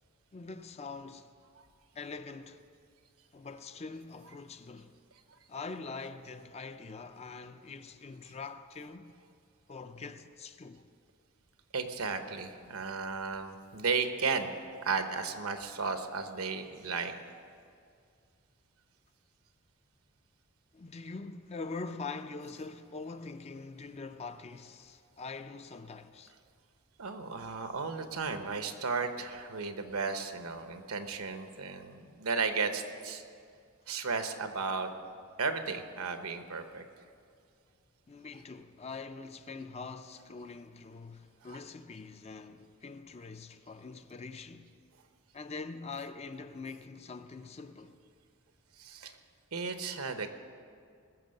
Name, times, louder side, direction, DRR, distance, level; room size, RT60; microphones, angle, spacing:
voice 1, 0.3-1.3 1.9-2.6 3.3-5.0 5.5-9.2 9.7-10.8 20.7-26.3 38.1-44.7 45.3-47.9, left 4 dB, 30° left, 0.4 m, -44 dB
voice 2, 11.7-14.5 14.8-17.1 27.0-33.2 33.9-34.9 35.4-36.8 41.5-41.6 48.8-49.2 49.5-50.3, right 4 dB, 80° right, 1.0 m, -34 dB
20.0 x 7.1 x 6.5 m
head